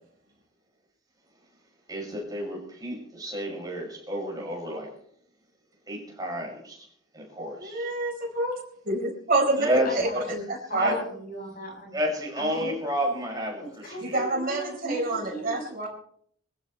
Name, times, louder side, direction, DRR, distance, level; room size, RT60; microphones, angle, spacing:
voice 1, 1.9-4.9 5.9-6.9 7.1-7.9 9.6-10.2 10.8-11.0 11.9-14.1, equal, 20° right, -1 dB, 6.4 m, -30 dB
voice 2, 7.6-8.6 8.9-9.7 10.7-10.9 14.1-14.6 14.9-15.9, right 2 dB, 45° right, 1 dB, 4.6 m, -27 dB
voice 3, 9.8-11.9 12.4-12.7 13.6-15.9, right 1 dB, 50° left, 1 dB, 7.5 m, -38 dB
23.0 x 15.0 x 3.3 m, 0.62 s
head